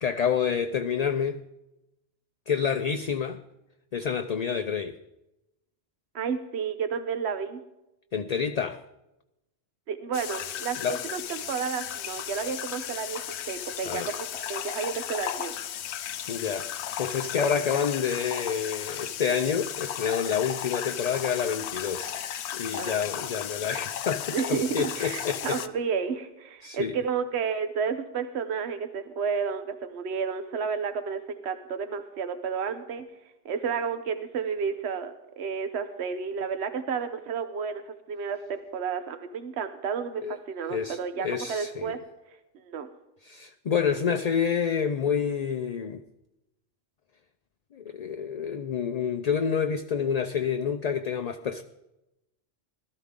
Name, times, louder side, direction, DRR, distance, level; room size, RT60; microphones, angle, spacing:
voice 1, 0.0-1.4 2.5-3.4 3.9-5.0 8.1-8.8 10.8-11.0 13.8-14.1 16.3-16.7 17.0-22.2 22.5-25.6 26.6-27.0 40.2-40.3 40.7-41.9 43.2-46.0 47.7-51.6, left 7 dB, 50° left, 0.6 m, -28 dB
voice 2, 6.1-7.6 9.9-15.5 22.8-23.0 23.3-23.4 24.3-33.1 33.4-42.0 42.5-42.9, right 6 dB, 80° right, 1.1 m, -31 dB
sound 1, 10.1-25.7, left 10 dB, 85° left, 0.9 m, -35 dB
17.0 x 13.0 x 3.7 m
omnidirectional pair, 1.1 m